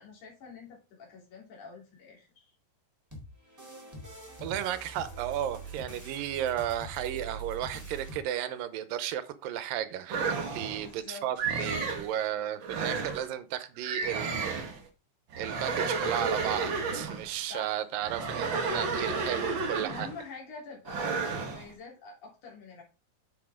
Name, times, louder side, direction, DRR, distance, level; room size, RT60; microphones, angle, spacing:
voice 1, 0.0-2.5 10.8-11.3 17.5-17.8 19.9-22.8, left 4 dB, 60° left, 4.8 m, -46 dB
sound 1, 3.1-8.2, right 3 dB, 5° right, 3.5 m, -44 dB
voice 2, 4.4-14.7 15.4-20.1, right 11 dB, 80° right, 2.5 m, -34 dB
sound 2, 10.1-10.9 11.4-12.1 12.6-13.3 13.8-14.8 15.3-17.3 18.0-20.2 20.8-21.6, right 4 dB, 60° right, 1.3 m, -32 dB
8.4 x 7.8 x 3.7 m
omnidirectional pair, 4.0 m